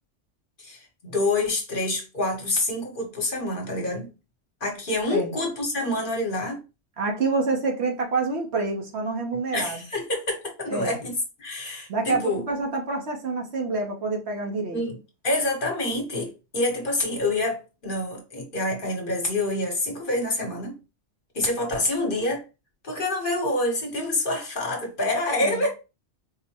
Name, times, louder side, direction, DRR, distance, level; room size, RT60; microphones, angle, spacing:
voice 1, 0.6-4.1 4.6-6.6 9.5-12.4 14.7-15.0 15.2-20.8 21.3-22.4 22.8-25.7, left 2 dB, 50° left, 1.2 m, -27 dB
voice 2, 7.0-9.8 10.7-11.0 11.9-14.8 25.4-25.6, right 3 dB, 65° right, 1.2 m, -27 dB
4.5 x 2.1 x 2.9 m
omnidirectional pair, 1.2 m